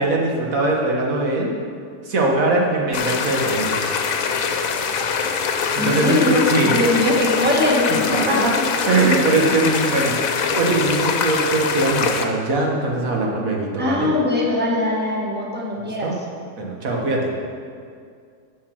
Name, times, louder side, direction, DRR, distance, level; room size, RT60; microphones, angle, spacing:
voice 1, 0.0-1.5 2.0-3.8 5.7-6.7 8.3-8.5 8.9-14.1 16.0-16.1 16.6-17.3, right 2 dB, 85° right, -1 dB, 1.7 m, -21 dB
sound 1, 2.9-12.2, left 5 dB, 85° left, 1.1 m, -23 dB
voice 2, 5.8-8.4 13.8-16.1, left 1 dB, 10° right, -3 dB, 1.3 m, -21 dB
7.4 x 7.3 x 6.4 m, 2.2 s
omnidirectional pair, 1.4 m